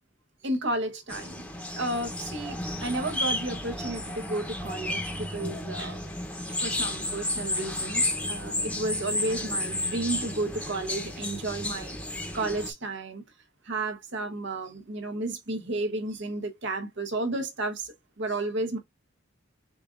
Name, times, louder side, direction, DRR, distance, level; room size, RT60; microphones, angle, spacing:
voice 1, 0.4-1.4 1.8-6.0 6.4-13.2 13.6-18.8, right 2 dB, 65° right, 1.2 m, -32 dB
sound 1, 1.1-12.7, left 1 dB, 5° left, 0.9 m, -32 dB
6.8 x 2.6 x 2.5 m
head